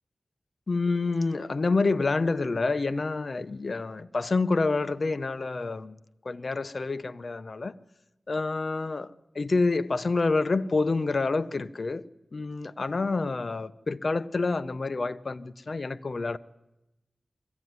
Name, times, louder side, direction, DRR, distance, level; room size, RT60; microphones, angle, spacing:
voice 1, 0.7-6.0 6.2-7.8 8.3-16.4, left 3 dB, 55° left, 0.7 m, -28 dB
22.5 x 15.0 x 9.4 m
wide cardioid pair, 90°, 0 cm